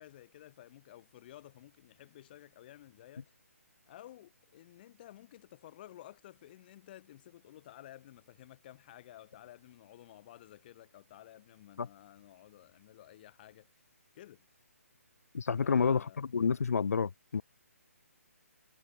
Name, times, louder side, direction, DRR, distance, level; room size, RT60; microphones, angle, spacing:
voice 1, 0.0-3.4 3.9-13.9 14.1-14.6 15.6-16.2, left 13 dB, 35° left, 7.1 m, -54 dB
voice 2, 15.3-17.4, left 5 dB, 70° left, 0.8 m, -29 dB
figure-of-eight pair, 145°, 8 cm